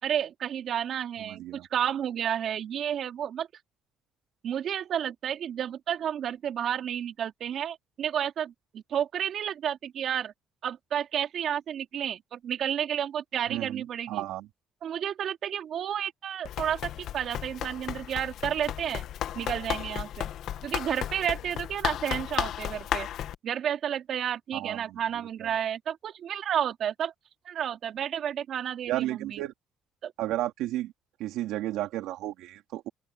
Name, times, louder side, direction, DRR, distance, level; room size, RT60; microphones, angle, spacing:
voice 1, 0.0-3.5 4.4-10.3 10.6-14.2 14.8-19.0 19.3-20.3 20.6-23.1 23.4-27.1 27.4-29.4 30.0-30.1, right 9 dB, 50° right, 2.7 m, -31 dB
voice 2, 1.2-1.7 13.5-14.5 24.5-24.8 28.9-29.5 30.2-30.9 31.2-32.9, right 15 dB, 85° right, 3.2 m, -32 dB
Run, 16.4-23.4, left 11 dB, 60° left, 1.5 m, -34 dB
cardioid pair, 130°, 0 cm